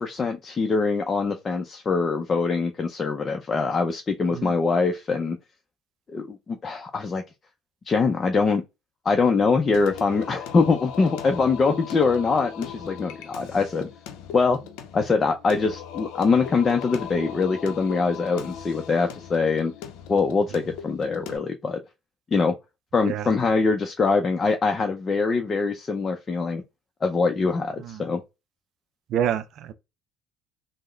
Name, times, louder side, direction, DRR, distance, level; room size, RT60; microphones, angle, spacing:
voice 1, 0.0-5.4 6.1-7.2 7.9-8.6 9.0-13.9 14.3-14.6 14.9-19.7 20.1-21.8 22.3-22.6 22.9-26.6 27.0-28.2, left 4 dB, 35° left, 0.5 m, -23 dB
Singing, 9.7-21.4, left 8 dB, 75° left, 0.6 m, -39 dB
voice 2, 29.1-29.7, right 9 dB, 60° right, 0.4 m, -27 dB
3.6 x 2.1 x 3.1 m
supercardioid pair, 75°, 0 cm